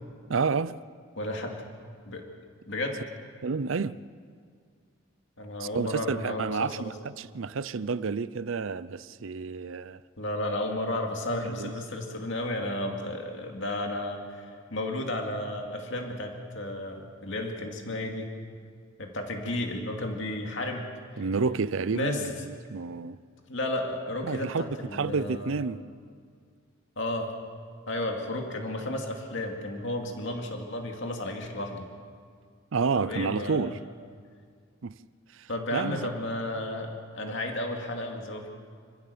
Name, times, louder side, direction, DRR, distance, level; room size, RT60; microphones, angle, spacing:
voice 1, 0.3-0.8 3.4-4.0 5.6-10.0 11.4-11.7 21.2-23.2 24.2-25.8 32.7-33.8 34.8-35.0 35.3-36.1, right 4 dB, 65° right, 0.5 m, -30 dB
voice 2, 1.2-1.6 2.1-2.2 2.7-3.0 5.4-6.9 10.2-18.3 19.0-21.2 21.9-22.2 23.5-25.6 27.0-27.3 27.9-31.9 33.0-33.7 35.5-38.5, left 1 dB, 60° left, 2.5 m, -33 dB
26.5 x 15.0 x 6.9 m
head